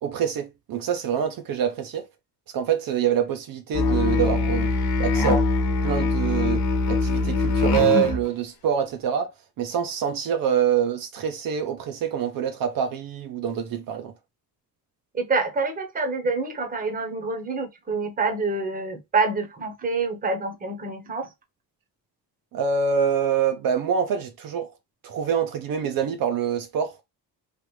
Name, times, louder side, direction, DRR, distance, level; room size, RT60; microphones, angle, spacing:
voice 1, 0.0-2.1 2.5-4.7 5.0-5.5 5.8-9.3 9.6-14.1 22.5-24.7 25.0-27.0, right 8 dB, 60° right, 0.6 m, -25 dB
Musical instrument, 3.7-8.2, left 3 dB, 70° left, 1.0 m, -22 dB
voice 2, 15.1-21.3, right 3 dB, 20° right, 0.8 m, -27 dB
3.2 x 2.4 x 3.0 m
cardioid pair, 145°, 38 cm